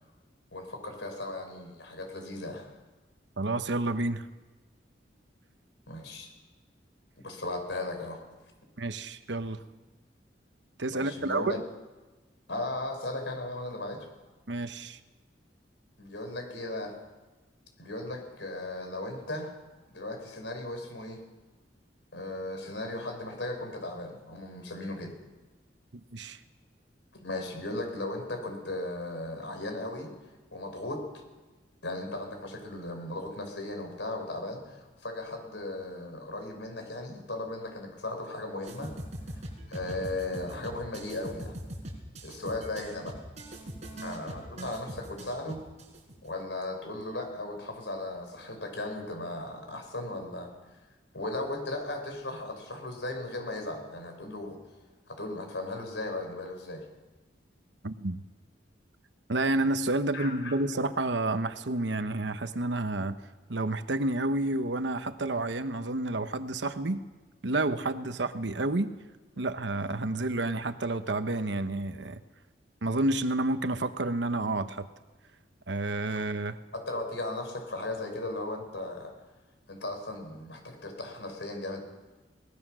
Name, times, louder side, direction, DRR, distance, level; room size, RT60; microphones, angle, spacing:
voice 1, 0.5-2.7 5.9-6.3 7.2-8.3 10.9-11.6 12.5-14.1 16.0-16.9 17.8-19.5 19.9-21.2 22.1-25.1 27.1-30.1 30.5-31.0 31.8-38.9 39.3-41.5 42.2-43.2 44.0-45.6 46.2-50.5 51.1-54.6 55.1-56.8 60.1-60.6 76.7-79.1 79.7-81.8, left 2 dB, 80° left, 4 dB, 4.9 m, -36 dB
voice 2, 3.4-4.3 8.8-9.6 10.8-11.6 14.5-15.0 26.1-26.4 57.8-58.2 59.3-63.2 63.5-67.0 67.4-68.9 69.4-72.2 72.8-74.9 75.7-76.6, right 2 dB, 75° right, 10 dB, 1.1 m, -30 dB
sound 1, 38.6-46.3, right 1 dB, 40° right, 4.8 m, -42 dB
22.0 x 19.5 x 6.3 m, 1.2 s
head